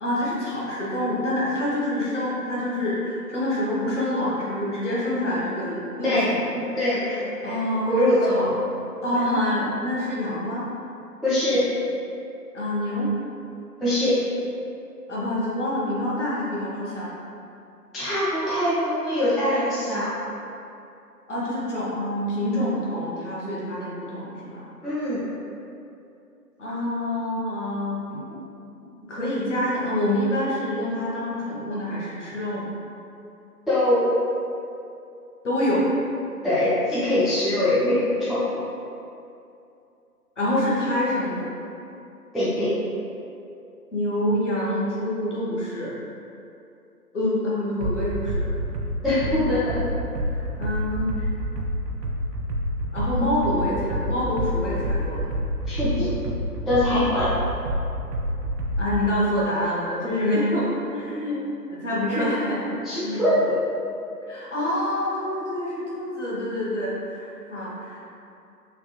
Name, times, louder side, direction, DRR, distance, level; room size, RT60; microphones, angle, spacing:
voice 1, 0.0-6.6 7.4-8.5 9.0-10.7 12.5-13.1 15.1-17.1 21.3-24.7 26.6-28.1 29.1-32.7 35.4-35.9 40.4-41.5 43.9-45.9 47.1-48.5 49.2-49.3 50.3-51.1 52.9-55.3 58.8-61.4 61.7-62.6 63.0-63.2 64.3-68.0, left 1 dB, 50° left, -7 dB, 0.9 m, -26 dB
voice 2, 6.5-7.6 7.9-8.5 11.2-11.6 13.8-14.2 17.9-20.1 24.8-25.2 28.1-28.2 33.7-34.0 36.4-38.6 42.3-42.7 49.0-49.9 55.7-56.1 56.7-57.3 62.1-62.5 62.8-63.6, left 1 dB, ahead, -12 dB, 0.3 m, -23 dB
sound 1, 47.8-59.1, equal, 85° right, 0.6 m, -28 dB
3.3 x 2.4 x 2.8 m, 2.6 s
figure-of-eight pair, 150°, 48 cm